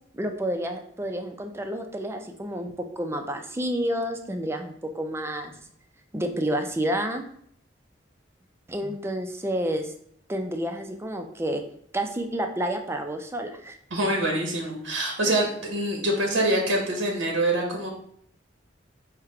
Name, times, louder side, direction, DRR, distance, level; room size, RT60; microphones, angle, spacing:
voice 1, 0.1-5.6 6.1-7.2 8.7-9.9 10.3-11.6 11.9-13.7, right 1 dB, 15° right, 5 dB, 0.4 m, -29 dB
voice 2, 13.9-17.9, right 1 dB, 85° right, 1 dB, 1.0 m, -25 dB
4.8 x 2.2 x 4.7 m, 0.66 s
head